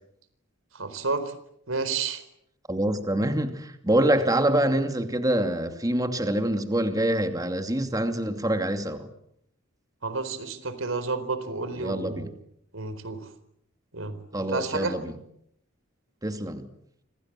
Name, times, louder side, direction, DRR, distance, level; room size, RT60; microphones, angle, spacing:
voice 1, 0.7-1.3 1.7-2.2 10.0-12.3 12.7-13.3 13.9-14.2 14.5-14.9, right 3 dB, 75° right, 4.4 m, -30 dB
voice 2, 2.7-9.1 11.8-12.3 14.3-15.1 16.2-16.7, right 1 dB, 20° right, 2.6 m, -25 dB
29.5 x 26.5 x 7.6 m
head